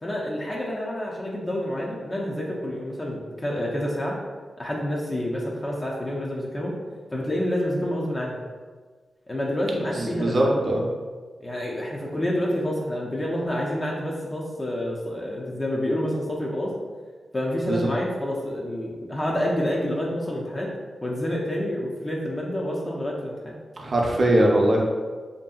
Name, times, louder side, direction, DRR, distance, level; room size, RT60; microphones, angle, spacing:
voice 1, 0.0-4.2 4.6-6.7 7.1-8.4 9.3-10.6 11.4-16.7 17.3-20.7 21.0-23.5, left 1 dB, 35° left, -3 dB, 0.5 m, -28 dB
voice 2, 9.9-10.8 17.6-17.9 23.8-24.8, right 1 dB, 55° right, -1 dB, 0.5 m, -21 dB
2.6 x 2.6 x 2.3 m, 1.5 s
cardioid pair, 50°, 0 cm